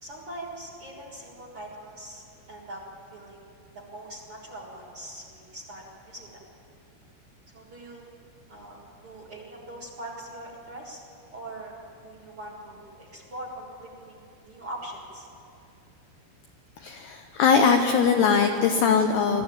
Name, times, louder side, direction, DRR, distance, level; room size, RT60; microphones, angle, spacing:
voice 1, 0.0-2.2 2.5-2.8 3.1-3.4 3.7-6.4 7.5-8.1 8.5-11.0 11.3-15.3, right 1 dB, 75° right, -5 dB, 1.2 m, -42 dB
voice 2, 16.8-19.4, left 6 dB, 85° left, 5 dB, 2.3 m, -21 dB
21.5 x 14.0 x 8.7 m, 2.6 s
omnidirectional pair, 6.0 m